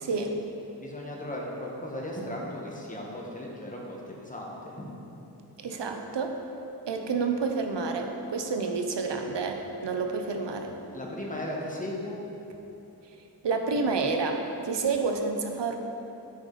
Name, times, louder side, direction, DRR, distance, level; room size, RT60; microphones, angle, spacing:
voice 1, 0.1-0.4 5.6-6.4 6.9-10.7 13.4-15.8, right 4 dB, 90° right, 4 dB, 0.7 m, -29 dB
voice 2, 0.8-4.9 10.9-12.2, left 1 dB, 20° left, -3 dB, 1.3 m, -36 dB
9.3 x 4.9 x 4.0 m, 3.0 s
wide cardioid pair, 60°, 41 cm